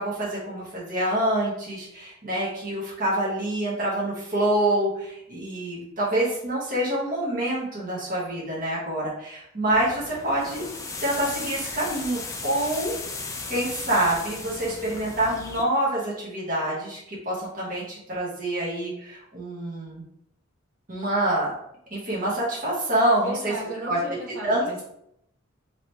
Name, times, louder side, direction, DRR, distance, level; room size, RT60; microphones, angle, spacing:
voice 1, 0.0-10.7 11.0-12.9 13.5-20.0 20.9-21.5 21.9-23.5 23.9-24.0 24.4-24.7, right 1 dB, 40° right, -6 dB, 0.9 m, -26 dB
sound 1, 9.7-15.6, left 3 dB, 15° left, 0.3 m, -36 dB
voice 2, 23.2-24.8, right 1 dB, 75° right, -5 dB, 1.2 m, -35 dB
2.9 x 2.9 x 3.2 m, 0.77 s
head